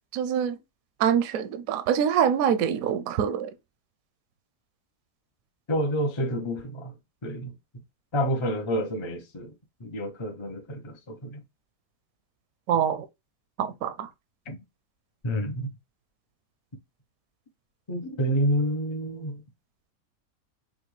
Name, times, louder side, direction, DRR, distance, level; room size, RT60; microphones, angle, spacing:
voice 1, 0.1-0.6 1.0-3.5 12.7-13.1 13.6-14.1, right 8 dB, 70° right, 0.9 m, -25 dB
voice 2, 5.7-6.9 7.2-7.5 8.1-9.5 9.8-11.4 14.5-14.6 15.2-15.7 17.9-19.4, equal, 50° left, 0.3 m, -28 dB
5.8 x 2.3 x 3.1 m
omnidirectional pair, 1.8 m